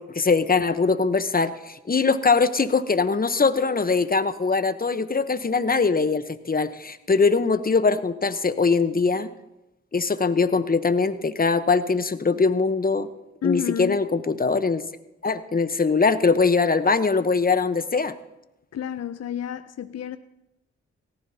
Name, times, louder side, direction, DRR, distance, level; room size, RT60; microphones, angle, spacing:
voice 1, 0.0-9.3 9.9-13.1 13.4-14.8 15.2-18.1, left 4 dB, 30° left, 0.9 m, -22 dB
voice 2, 13.4-14.0 18.7-20.2, left 9 dB, 60° left, 0.6 m, -29 dB
18.0 x 14.5 x 2.8 m
supercardioid pair, 40°, 29 cm